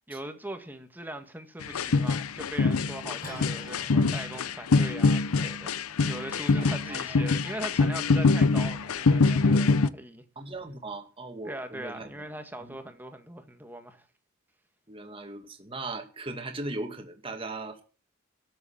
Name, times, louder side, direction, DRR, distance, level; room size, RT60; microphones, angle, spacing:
voice 1, 0.1-5.7 6.0-10.2 11.4-14.1, right 1 dB, 10° right, 1.7 m, -40 dB
sound 1, 1.6-9.9, left 4 dB, 90° left, 0.6 m, -24 dB
sound 2, 3.2-8.8, left 1 dB, 40° left, 6.8 m, -49 dB
voice 2, 6.6-7.2 10.4-12.0 12.6-12.8 14.9-17.8, right 2 dB, 25° right, 2.2 m, -38 dB
13.0 x 7.1 x 8.7 m
head